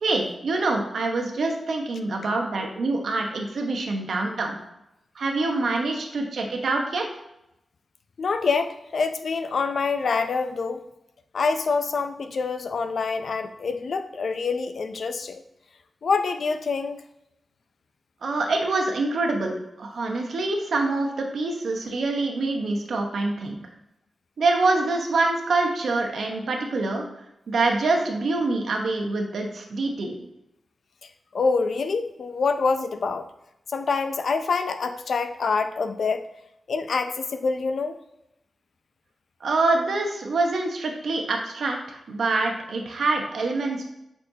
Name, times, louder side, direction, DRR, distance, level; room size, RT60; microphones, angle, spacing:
voice 1, 0.0-4.6 5.1-7.0 18.2-23.6 24.4-27.1 27.5-30.1 39.4-43.8, right 3 dB, 75° right, 2 dB, 1.0 m, -25 dB
voice 2, 8.2-10.8 11.3-15.4 16.0-17.0 31.3-33.3 33.7-36.3 36.7-38.0, left 4 dB, 70° left, 9 dB, 0.5 m, -26 dB
8.2 x 4.3 x 2.8 m, 0.86 s
cardioid pair, 70°, 0 cm